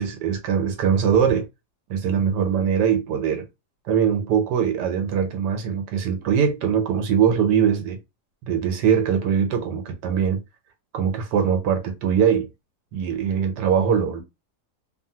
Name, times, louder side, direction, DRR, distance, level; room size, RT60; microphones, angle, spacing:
voice 1, 0.0-1.5 1.9-3.5 3.8-8.0 8.4-10.4 10.9-12.5 12.9-14.2, right 8 dB, 90° right, 1.3 m, -22 dB
2.7 x 2.6 x 2.7 m
omnidirectional pair, 1.8 m